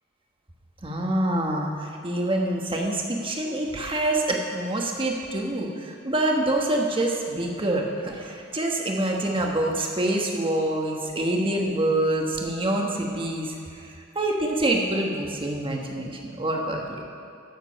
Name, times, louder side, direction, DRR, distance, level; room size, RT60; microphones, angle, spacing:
voice 1, 0.8-13.5 13.8-17.0, right 1 dB, 25° right, 0 dB, 1.3 m, -26 dB
13.5 x 7.2 x 5.3 m, 2.5 s
head